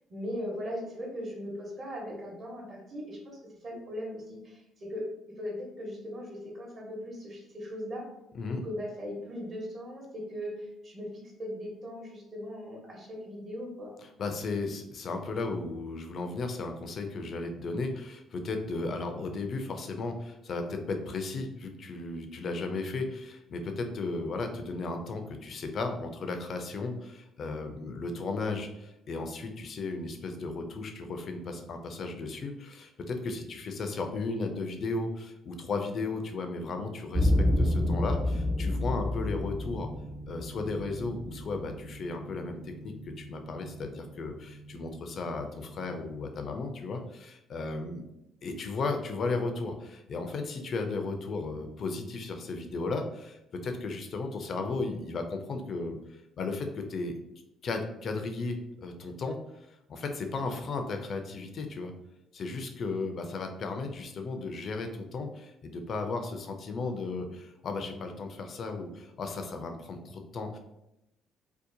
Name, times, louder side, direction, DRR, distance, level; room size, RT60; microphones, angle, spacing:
voice 1, 0.1-3.4 3.6-5.0 5.4-8.0 8.5-13.9, equal, 50° right, -2 dB, 1.0 m, -39 dB
voice 2, 14.0-39.9 40.3-48.0 48.4-57.2 57.6-59.6 59.9-61.9 62.3-70.6, left 3 dB, 55° left, 5 dB, 0.4 m, -35 dB
sound 1, 37.1-46.2, left 1 dB, 30° right, 0.4 m, -31 dB
2.7 x 2.1 x 2.6 m, 0.88 s
supercardioid pair, 75°, 0 cm